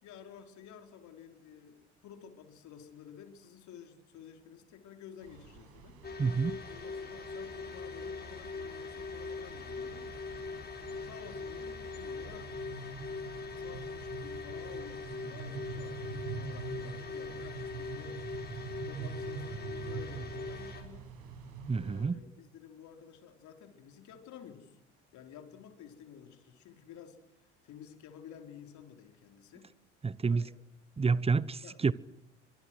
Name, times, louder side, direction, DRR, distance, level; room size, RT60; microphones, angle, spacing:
voice 1, 0.0-6.0 6.6-10.1 11.0-12.5 13.6-18.2 18.8-21.1 21.7-24.8 25.1-27.2 27.6-29.7 30.3-30.6 31.6-31.8, left 8 dB, 55° left, 4.5 m, -52 dB
sound 1, 5.2-22.1, right 5 dB, 60° right, 6.9 m, -45 dB
sound 2, 6.0-20.8, left 4 dB, 25° left, 5.7 m, -42 dB
voice 2, 6.2-6.6 21.7-22.2 30.0-30.5 31.0-31.9, right 4 dB, 15° right, 1.0 m, -29 dB
28.5 x 25.0 x 6.3 m
figure-of-eight pair, 60°, 35 cm